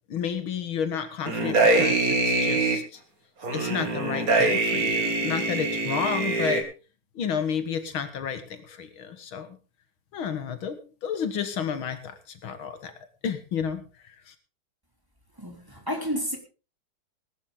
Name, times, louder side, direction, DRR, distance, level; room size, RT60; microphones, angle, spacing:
voice 1, 0.1-3.0 3.5-6.6 7.2-9.5 10.1-12.9 13.2-13.8 14.3-14.4, left 7 dB, 85° left, 9 dB, 2.5 m, -31 dB
sound 1, 1.3-2.8 3.4-6.6, right 3 dB, 45° right, 2.9 m, -24 dB
voice 2, 15.4-16.4, equal, 10° right, 2 dB, 3.1 m, -31 dB
19.0 x 11.5 x 3.8 m, 0.34 s
omnidirectional pair, 2.2 m